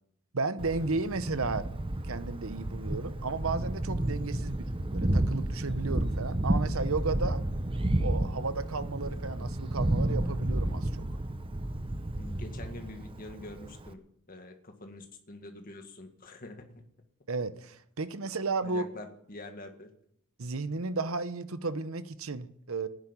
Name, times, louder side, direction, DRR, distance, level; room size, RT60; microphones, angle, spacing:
voice 1, 0.3-1.7 2.0-7.4 8.0-11.0 17.3-18.8 20.4-22.9, right 3 dB, 65° right, 13 dB, 0.9 m, -33 dB
Thunder, 0.6-13.9, right 1 dB, 25° right, 0.7 m, -31 dB
voice 2, 12.2-16.8 18.6-19.9, left 2 dB, 40° left, 5 dB, 1.9 m, -46 dB
12.0 x 10.5 x 9.9 m, 0.73 s
head